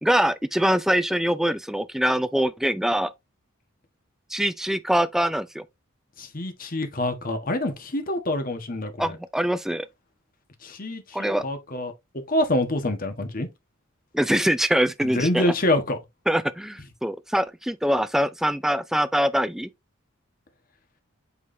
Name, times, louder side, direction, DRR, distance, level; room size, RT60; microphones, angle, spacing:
voice 1, 0.0-3.1 4.3-5.6 9.0-9.9 11.1-11.4 14.1-15.5 16.3-19.7, equal, ahead, 0.4 m, -23 dB
voice 2, 6.2-9.2 10.6-11.9 12.3-13.5 15.0-16.0, left 1 dB, 45° left, 1.4 m, -26 dB
8.4 x 4.9 x 2.7 m
head